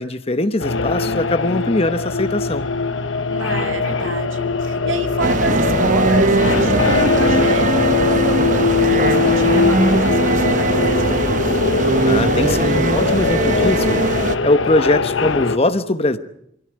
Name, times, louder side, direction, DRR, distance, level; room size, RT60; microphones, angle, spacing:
voice 1, 0.0-2.7 12.0-14.0 14.4-16.2, left 2 dB, 30° left, 1.1 m, -20 dB
sound 1, 0.6-15.6, left 4 dB, 80° left, 1.1 m, -21 dB
voice 2, 3.3-11.6, right 3 dB, 85° right, 2.2 m, -29 dB
sound 2, 5.2-14.4, right 2 dB, 40° right, 0.9 m, -19 dB
23.0 x 16.5 x 8.9 m
head